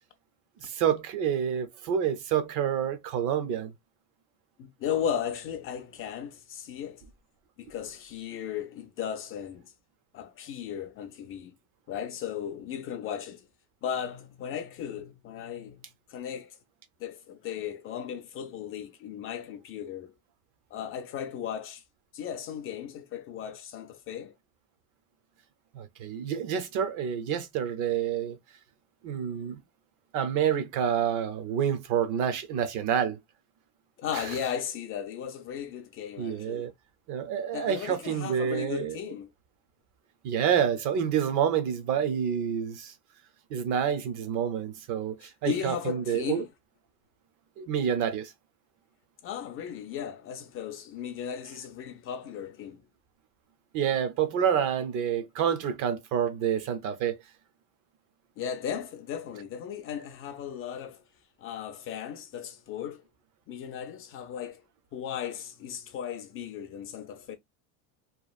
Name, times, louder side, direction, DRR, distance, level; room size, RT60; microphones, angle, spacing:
voice 1, 0.6-3.7 25.7-28.4 29.0-29.6 30.1-33.2 36.2-36.7 37.1-39.0 40.2-42.9 43.5-46.4 47.6-48.3 53.7-57.2, right 8 dB, 45° right, 0.6 m, -28 dB
voice 2, 4.6-7.0 7.6-9.7 10.1-11.5 11.9-13.5 13.8-16.6 17.0-20.1 20.7-21.8 22.1-24.3 34.0-36.7 37.5-39.3 45.2-46.5 49.2-52.8 58.4-61.0 61.4-63.0 63.5-64.6 64.9-67.3, left 8 dB, 35° left, 0.4 m, -36 dB
3.0 x 2.4 x 2.3 m
cardioid pair, 145°, 42 cm